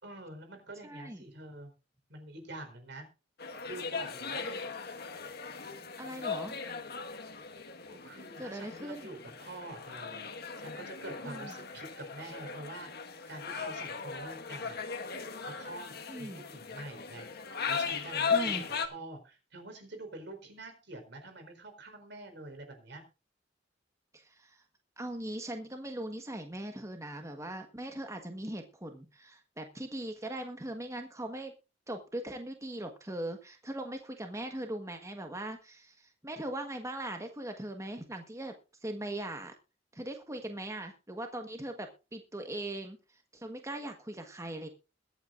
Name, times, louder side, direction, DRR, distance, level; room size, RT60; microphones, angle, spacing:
voice 1, 0.0-1.7 2.1-3.1 3.6-4.4 7.9-10.3 10.6-12.9 13.3-14.8 15.4-17.3 17.7-23.0, right 2 dB, 65° right, 7 dB, 4.3 m, -46 dB
voice 2, 0.8-1.2 4.4-4.6 6.0-6.6 8.4-9.1 11.2-11.5 16.1-16.4 18.3-18.7 24.1-24.6 25.0-31.5 31.9-38.5 38.8-39.5 39.9-44.7, right 1 dB, 15° right, 5 dB, 1.4 m, -40 dB
sound 1, 3.4-18.9, left 5 dB, 55° left, 1.6 m, -38 dB
22.0 x 8.9 x 2.5 m, 0.31 s
head